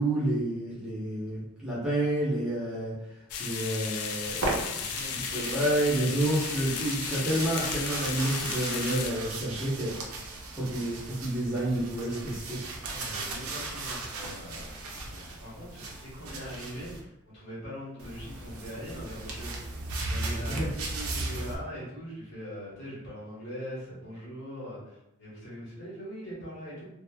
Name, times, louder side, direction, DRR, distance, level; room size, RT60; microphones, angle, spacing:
voice 1, 0.0-3.0 3.4-4.6 5.0-10.0 10.5-12.6 20.5-20.7, right 1 dB, 5° right, -9 dB, 0.7 m, -29 dB
sound 1, 3.3-9.1, left 6 dB, 90° left, 0.3 m, -35 dB
sound 2, 4.2-17.0 18.0-21.6, right 2 dB, 75° right, 0.5 m, -37 dB
voice 2, 4.8-5.5 12.9-19.6 20.1-26.9, equal, 60° left, -7 dB, 1.3 m, -41 dB
3.0 x 2.0 x 2.2 m, 0.85 s
head